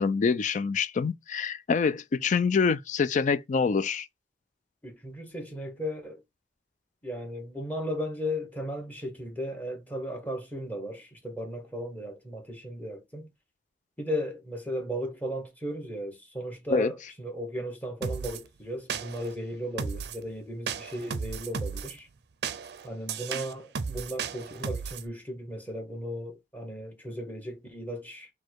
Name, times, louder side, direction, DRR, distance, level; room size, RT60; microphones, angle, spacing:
voice 1, 0.0-4.1 16.7-16.9, left 5 dB, 45° left, 0.4 m, -26 dB
voice 2, 4.8-6.2 7.0-13.3 14.0-22.1 22.8-28.3, equal, 10° left, 1.3 m, -36 dB
sound 1, 18.0-18.4 18.9-19.3 19.8-20.2 20.7-21.9 22.4-25.1, right 6 dB, 65° right, 0.5 m, -34 dB
4.3 x 2.2 x 4.4 m
head